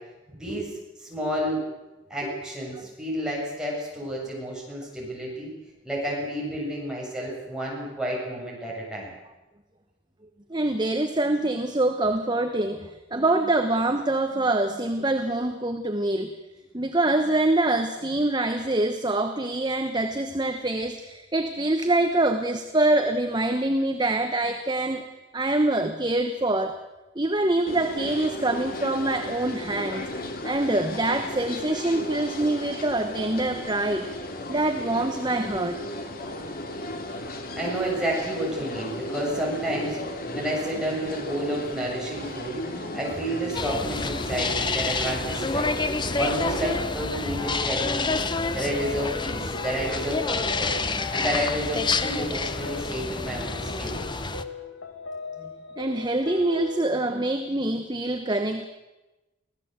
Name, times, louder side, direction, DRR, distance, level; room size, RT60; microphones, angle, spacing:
voice 1, 0.3-0.7 1.0-1.6 2.1-5.5 5.8-9.1 37.5-42.6 42.9-45.7 46.2-48.2 48.5-50.8 51.1-54.0, right 1 dB, 5° right, -4 dB, 7.4 m, -30 dB
voice 2, 10.5-16.3 16.7-25.0 25.3-26.8 27.1-30.1 30.4-34.1 34.5-35.8 55.4-55.5 55.8-58.7, right 2 dB, 20° right, 7 dB, 1.1 m, -25 dB
sound 1, 27.7-46.8, left 1 dB, 45° left, 2.5 m, -35 dB
sound 2, 43.5-54.4, left 3 dB, 20° left, 0.9 m, -28 dB
sound 3, 46.0-57.1, left 4 dB, 80° left, 2.5 m, -39 dB
24.5 x 16.5 x 8.2 m, 1.1 s
head